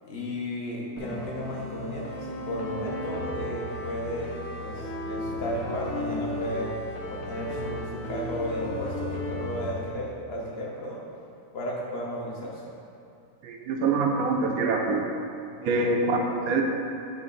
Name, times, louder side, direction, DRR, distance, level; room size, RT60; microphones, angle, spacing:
voice 1, 0.0-4.3 4.6-6.7 7.1-11.0 11.5-12.6 15.7-15.8, equal, 45° left, -4 dB, 1.3 m, -34 dB
sound 1, 1.0-9.7, left 1 dB, 65° left, 1.2 m, -35 dB
voice 2, 13.4-15.1 15.6-16.6, right 3 dB, 70° right, 2 dB, 1.1 m, -25 dB
9.8 x 3.5 x 3.8 m, 2.6 s
omnidirectional pair, 1.6 m